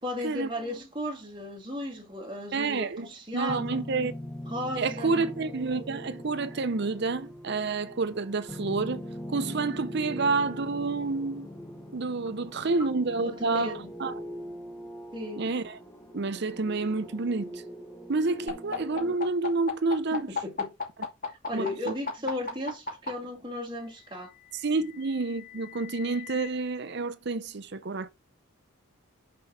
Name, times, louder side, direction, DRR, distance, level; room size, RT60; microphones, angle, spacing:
voice 1, 0.0-3.8 4.5-5.3 13.2-13.9 15.1-15.5 20.1-20.7 21.3-24.3, left 1 dB, 20° right, 2.0 m, -35 dB
voice 2, 2.5-3.1 3.3-4.1 4.8-9.0 9.3-11.5 11.9-13.7 14.0-14.1 15.4-15.8 16.1-17.6 18.1-20.3 21.5-21.9 24.6-28.1, right 3 dB, 50° right, 0.6 m, -29 dB
sound 1, 3.5-19.1, equal, 10° left, 1.0 m, -41 dB
sound 2, 18.5-23.1 24.2-26.5, left 4 dB, 40° left, 2.4 m, -36 dB
6.1 x 4.4 x 4.9 m
head